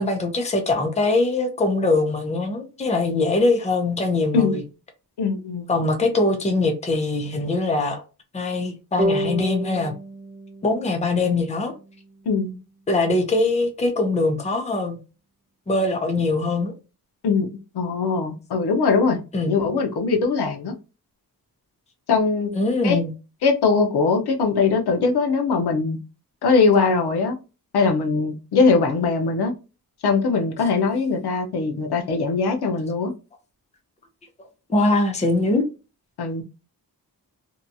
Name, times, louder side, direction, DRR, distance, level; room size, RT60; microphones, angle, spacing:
voice 1, 0.0-4.6 5.7-8.0 8.3-9.9 10.6-11.7 12.9-15.0 15.7-16.7 19.3-19.6 22.6-23.1 34.4-35.6, left 2 dB, 20° left, 0.5 m, -22 dB
voice 2, 5.2-5.7 12.3-12.6 17.2-17.5 17.7-20.7 22.1-22.5 22.8-23.0 23.4-26.0 26.4-27.4 27.7-29.5 30.0-33.1 36.2-36.4, left 4 dB, 85° left, 0.7 m, -21 dB
sound 1, 9.0-12.3, right 1 dB, 25° right, 0.6 m, -30 dB
2.8 x 2.3 x 2.5 m
wide cardioid pair, 175°, 38 cm